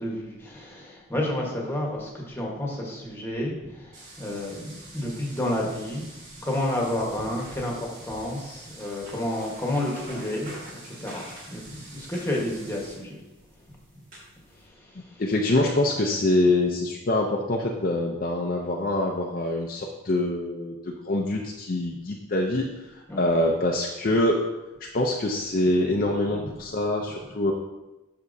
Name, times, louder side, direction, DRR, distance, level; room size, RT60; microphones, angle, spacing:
voice 1, 0.0-6.0 6.3-13.2 13.7-13.8 14.6-15.2 23.1-23.3, left 1 dB, 10° left, -2 dB, 1.2 m, -31 dB
sound 1, 3.9-12.9, right 2 dB, 70° right, 2.1 m, -47 dB
sound 2, 6.7-14.7, right 1 dB, 40° right, 2.1 m, -48 dB
voice 2, 15.2-24.4 24.9-27.5, left 2 dB, 40° left, 0 dB, 0.5 m, -25 dB
8.2 x 6.0 x 2.6 m, 1.0 s
head